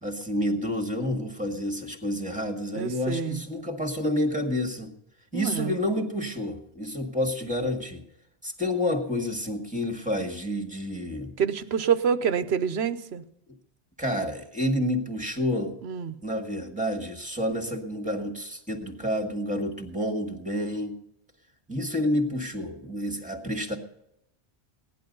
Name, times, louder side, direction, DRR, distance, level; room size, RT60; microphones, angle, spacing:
voice 1, 0.0-4.9 5.3-8.0 8.4-11.3 14.0-15.7 16.2-21.0 21.7-23.8, left 1 dB, 5° right, 4 dB, 1.8 m, -29 dB
voice 2, 2.7-3.4 5.3-5.8 11.4-13.2 15.8-16.2, right 7 dB, 75° right, 12 dB, 1.1 m, -27 dB
17.0 x 11.0 x 5.3 m, 0.77 s
omnidirectional pair, 1.1 m